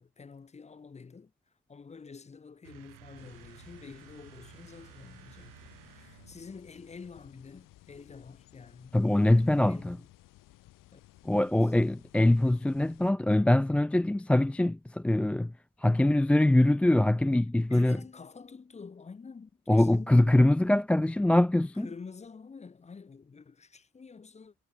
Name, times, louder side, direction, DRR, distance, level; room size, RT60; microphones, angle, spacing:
voice 1, 0.0-1.3 1.7-10.1 10.9-11.0 11.4-11.5 17.7-20.5 21.7-24.5, left 5 dB, 20° left, 1.4 m, -48 dB
sound 1, 2.6-6.6, right 18 dB, 70° right, 3.0 m, -54 dB
sound 2, 3.2-13.1, left 16 dB, 70° left, 6.9 m, -57 dB
voice 2, 8.9-10.0 11.2-15.5 15.8-18.0 19.7-21.9, left 1 dB, 5° left, 0.3 m, -23 dB
cardioid pair, 125°, 34 cm